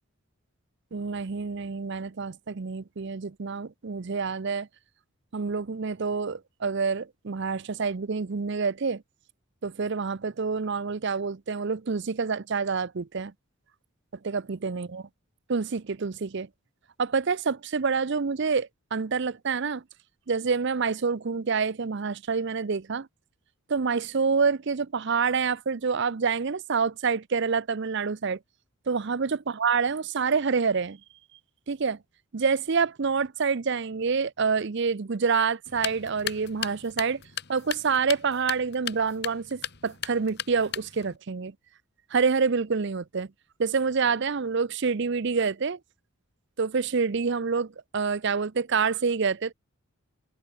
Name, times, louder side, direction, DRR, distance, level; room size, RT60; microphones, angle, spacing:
voice 1, 0.9-4.7 5.3-9.0 9.6-13.3 14.2-15.1 15.5-16.5 17.0-19.8 20.3-23.1 23.7-28.4 28.9-31.0 31.7-32.0 32.3-37.2 37.5-41.5 42.1-43.3 43.6-45.8 46.6-49.5, right 5 dB, 55° right, 0.6 m, -27 dB
sound 1, 35.7-41.2, left 10 dB, 50° left, 2.0 m, -37 dB
head